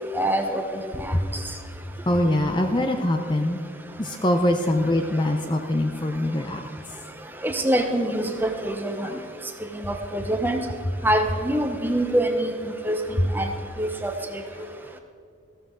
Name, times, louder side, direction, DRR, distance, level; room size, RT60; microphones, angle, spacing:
voice 1, 0.1-0.6 1.0-1.1 7.4-9.1 9.7-10.6 11.0-12.5 12.8-13.0 13.3-13.5 13.8-14.1, right 1 dB, 10° right, 5 dB, 0.9 m, -24 dB
voice 2, 2.1-3.7 4.0-6.6 9.0-9.1 13.2-13.3 14.5-14.7, left 1 dB, 20° left, 5 dB, 0.6 m, -23 dB
15.0 x 13.5 x 3.9 m, 2.4 s
head